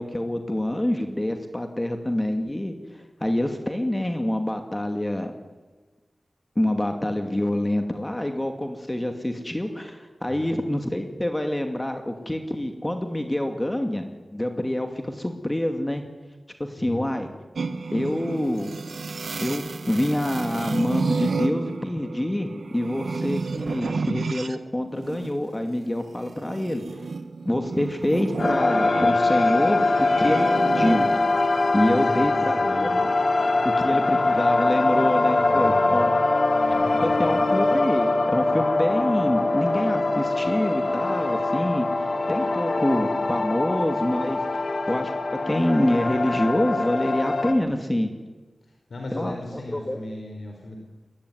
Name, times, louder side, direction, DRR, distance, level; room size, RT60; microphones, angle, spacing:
voice 1, 0.0-5.3 6.6-16.1 16.6-17.3 17.9-18.7 19.4-27.0 27.4-31.1 31.7-33.1 33.6-36.1 37.0-44.4 44.9-45.1 45.5-48.1 49.1-50.0, left 1 dB, 20° left, 5 dB, 2.4 m, -26 dB
sound 1, 17.6-24.6 24.9-31.7, right 4 dB, 80° right, 1.3 m, -31 dB
sound 2, 28.4-47.5, left 2 dB, 65° left, 2.8 m, -23 dB
voice 2, 31.9-32.9 35.4-35.9 36.7-37.3 48.9-50.8, left 2 dB, 80° left, 2 dB, 4.3 m, -37 dB
22.5 x 16.5 x 9.9 m, 1.3 s
cardioid pair, 55°, 0 cm